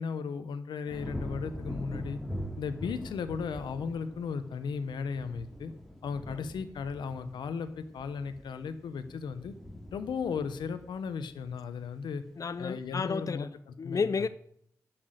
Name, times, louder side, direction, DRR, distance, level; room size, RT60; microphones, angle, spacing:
voice 1, 0.0-2.2 2.6-5.7 6.0-9.5 9.9-12.2 12.6-14.0, left 5 dB, 85° left, 1.0 m, -36 dB
sound 1, 0.9-12.2 12.6-13.0, equal, ahead, 3.1 m, -43 dB
voice 2, 12.4-13.5 13.8-14.3, left 5 dB, 50° left, 0.5 m, -31 dB
11.5 x 6.2 x 7.8 m
supercardioid pair, 45°, 7 cm